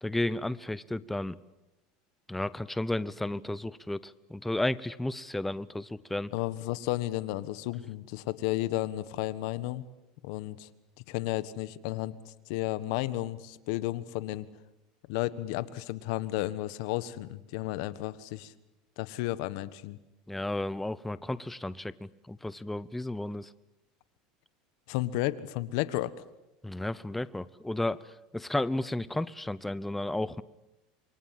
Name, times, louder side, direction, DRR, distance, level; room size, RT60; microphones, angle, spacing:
voice 1, 0.0-1.4 2.3-6.3 20.3-23.5 26.6-28.1 28.3-30.4, left 1 dB, 5° left, 17 dB, 0.8 m, -33 dB
voice 2, 6.3-9.8 10.2-10.7 11.1-14.5 15.1-18.5 19.0-20.0 24.9-26.1, left 16 dB, 70° left, 15 dB, 1.4 m, -33 dB
27.5 x 24.0 x 7.6 m, 0.96 s
supercardioid pair, 110°, 3 cm